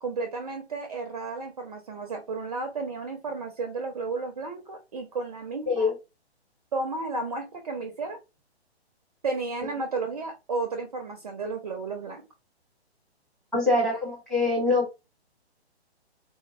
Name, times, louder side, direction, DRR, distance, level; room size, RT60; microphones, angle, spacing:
voice 1, 0.0-5.9 6.7-8.2 9.2-12.2 13.8-14.0, right 3 dB, 35° right, 5 dB, 0.5 m, -33 dB
voice 2, 13.5-14.9, left 3 dB, ahead, -2 dB, 0.9 m, -24 dB
3.8 x 2.0 x 2.5 m, 0.26 s
figure-of-eight pair, 130°, 33 cm